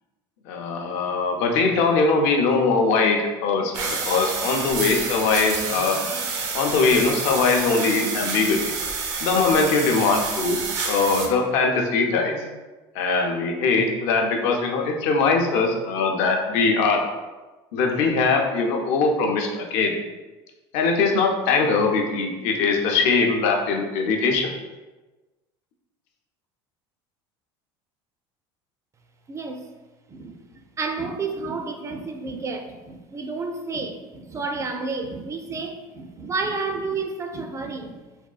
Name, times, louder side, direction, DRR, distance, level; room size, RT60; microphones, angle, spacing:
voice 1, 0.5-6.0 6.5-8.7 9.2-10.6 10.8-12.4 12.9-17.0 17.7-19.9 20.7-24.5, left 4 dB, 70° left, 2 dB, 0.5 m, -21 dB
sound 1, 3.7-11.3, right 4 dB, 70° right, 0.6 m, -28 dB
voice 2, 29.3-29.6 30.1-38.0, right 4 dB, 25° right, 5 dB, 0.4 m, -31 dB
3.5 x 2.2 x 2.3 m, 1.2 s
hypercardioid pair, 85°, 12 cm